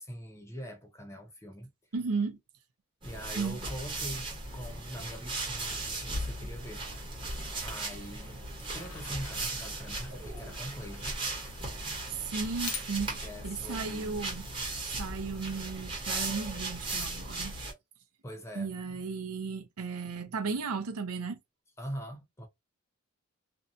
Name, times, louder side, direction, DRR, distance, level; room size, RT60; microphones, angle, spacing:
voice 1, 0.0-1.7 3.0-6.8 7.1-8.4 8.7-11.2 13.2-14.3 18.2-18.7 21.8-22.5, equal, 10° left, 0.5 m, -43 dB
voice 2, 1.9-2.4 3.3-3.6 12.1-14.5 14.9-17.6 18.6-21.4, right 4 dB, 85° right, 0.6 m, -35 dB
sound 1, 3.0-17.7, right 2 dB, 20° right, 1.0 m, -37 dB
sound 2, 8.8-14.7, left 7 dB, 75° left, 0.6 m, -48 dB
2.6 x 2.2 x 2.6 m
head